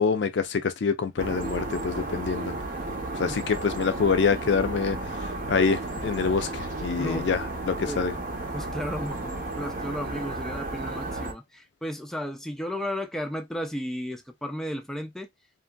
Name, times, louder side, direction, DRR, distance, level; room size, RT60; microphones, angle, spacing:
voice 1, 0.0-2.5 3.1-8.1, left 5 dB, 75° left, 0.4 m, -26 dB
sound 1, 1.2-11.3, right 2 dB, 50° right, 0.7 m, -33 dB
voice 2, 7.0-7.3 7.9-8.0 8.5-15.3, equal, 5° left, 0.4 m, -34 dB
2.8 x 2.6 x 2.2 m
head